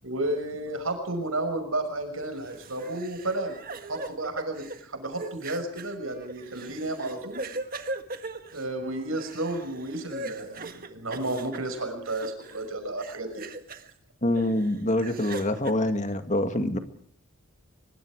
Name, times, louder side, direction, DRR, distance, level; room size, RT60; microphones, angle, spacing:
voice 1, 0.0-3.6 3.9-7.4 8.5-13.5 16.5-16.8, right 2 dB, 75° right, 6 dB, 6.0 m, -32 dB
sound 1, 2.2-12.7 13.0-13.9 14.3-15.7, right 2 dB, 40° right, 1.7 m, -40 dB
voice 2, 14.2-16.8, left 1 dB, 35° left, 8 dB, 2.1 m, -25 dB
23.5 x 23.0 x 4.9 m, 0.63 s
head